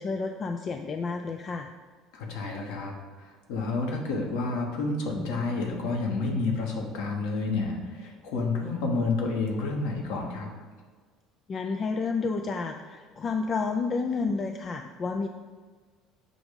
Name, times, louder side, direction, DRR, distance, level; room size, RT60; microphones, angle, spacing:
voice 1, 0.0-1.7 11.5-15.3, left 4 dB, 40° left, 5 dB, 0.4 m, -30 dB
voice 2, 2.1-2.9 3.2-10.5, left 3 dB, 65° left, 1 dB, 1.2 m, -30 dB
6.1 x 3.5 x 5.2 m, 1.5 s
figure-of-eight pair, 60°, 0 cm